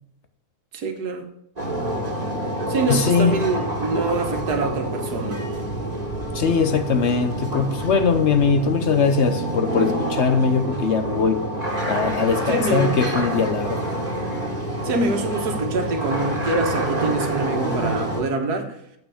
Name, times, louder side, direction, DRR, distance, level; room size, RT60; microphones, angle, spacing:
voice 1, 0.7-1.3 2.7-5.4 12.5-13.0 14.8-18.8, right 3 dB, 85° right, 1.9 m, -25 dB
sound 1, 1.6-18.2, right 1 dB, 25° right, 2.3 m, -27 dB
voice 2, 2.9-3.3 6.3-11.4 11.9-13.8, left 5 dB, 55° left, 0.9 m, -21 dB
7.5 x 5.7 x 7.0 m
omnidirectional pair, 1.6 m